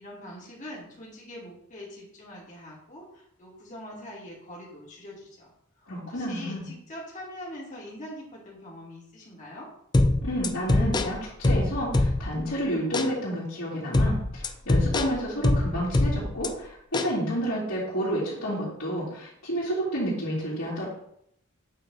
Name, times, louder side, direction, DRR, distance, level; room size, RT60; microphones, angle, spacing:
voice 1, 0.0-5.5 5.8-5.9 6.1-9.7, left 1 dB, 35° left, -4 dB, 2.5 m, -43 dB
voice 2, 5.9-6.7 10.2-20.9, equal, 80° left, -11 dB, 3.1 m, -30 dB
sound 1, 9.9-12.5 12.9-13.1 13.9-16.5 16.9-17.1, left 2 dB, 20° left, 0.4 m, -24 dB
8.7 x 3.9 x 5.6 m, 0.71 s
head